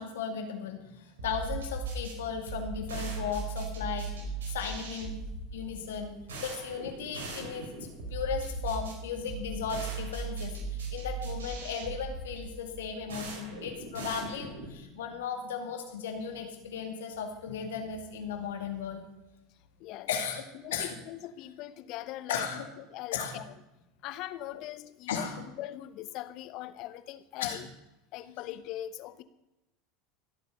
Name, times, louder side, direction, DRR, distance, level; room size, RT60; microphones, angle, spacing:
voice 1, 0.0-5.2 5.5-6.1 6.4-7.7 8.1-19.0 20.1-20.4 20.7-20.9 22.3-22.6 23.1-23.4 24.5-24.6 25.1-25.5 27.4-27.6 28.3-28.4, left 6 dB, 85° left, 5 dB, 2.4 m, -36 dB
sound 1, 1.2-14.8, right 3 dB, 85° right, 4.3 m, -38 dB
voice 2, 20.5-22.4 22.8-23.5 24.0-25.3 25.6-27.7 28.1-29.2, left 14 dB, 60° left, 14 dB, 1.0 m, -41 dB
16.5 x 8.1 x 6.7 m, 0.94 s
hypercardioid pair, 90°, 0 cm